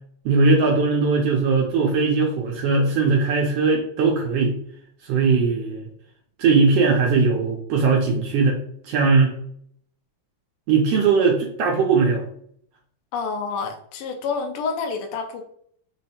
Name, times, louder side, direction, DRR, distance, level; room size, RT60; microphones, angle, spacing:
voice 1, 0.2-4.5 5.0-5.9 6.4-8.6 8.8-9.3 10.7-12.2, right 4 dB, 75° right, -1 dB, 1.5 m, -19 dB
voice 2, 13.1-15.4, left 5 dB, 85° left, 3 dB, 1.2 m, -28 dB
5.3 x 2.1 x 4.2 m, 0.65 s
omnidirectional pair, 3.4 m